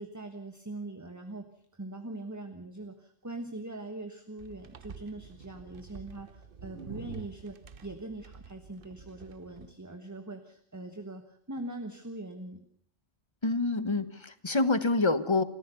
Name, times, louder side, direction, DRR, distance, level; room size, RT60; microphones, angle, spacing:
voice 1, 0.0-1.5 1.7-7.6 7.8-12.6, right 2 dB, 15° right, 6 dB, 1.3 m, -42 dB
sound 1, 4.4-9.7, right 6 dB, 50° right, 1.1 m, -48 dB
voice 2, 13.4-15.4, left 3 dB, 25° left, 14 dB, 1.0 m, -27 dB
27.5 x 14.5 x 6.9 m, 0.63 s
omnidirectional pair, 1.2 m